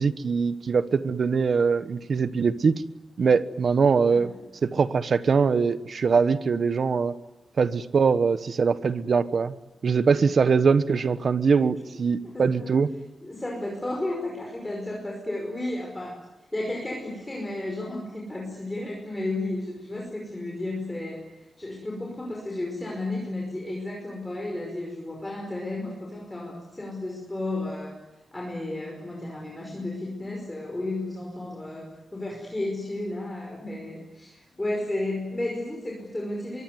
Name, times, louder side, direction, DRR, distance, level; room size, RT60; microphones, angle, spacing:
voice 1, 0.0-2.8 3.2-4.3 4.6-7.1 7.6-9.5 9.8-12.9, right 5 dB, 50° right, 13 dB, 1.2 m, -22 dB
voice 2, 4.1-4.4 10.9-11.0 11.8-12.0 12.3-12.8 13.2-16.2 16.5-28.0 28.3-36.6, left 2 dB, 15° left, -1 dB, 5.3 m, -33 dB
25.0 x 23.5 x 9.5 m, 0.99 s
wide cardioid pair, 150°, 0 cm